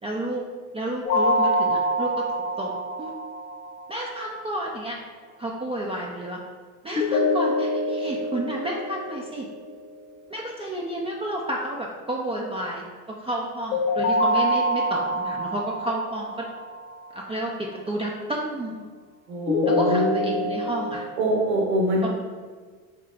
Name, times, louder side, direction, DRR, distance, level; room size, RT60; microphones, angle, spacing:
voice 1, 0.0-0.4 0.7-2.3 2.6-2.7 3.0-3.1 3.9-5.0 5.4-6.4 6.8-9.5 10.3-16.5 17.1-18.8 19.7-21.0 22.0-22.1, right 1 dB, 15° right, -2 dB, 0.3 m, -31 dB
sound 1, 1.1-4.0 7.0-10.0 13.7-16.9 19.5-21.0, left 1 dB, 80° left, 0.8 m, -25 dB
voice 2, 19.3-20.3 21.2-22.1, right 1 dB, 80° right, -1 dB, 1.0 m, -24 dB
3.8 x 3.6 x 3.3 m, 1.5 s
hypercardioid pair, 70°, 46 cm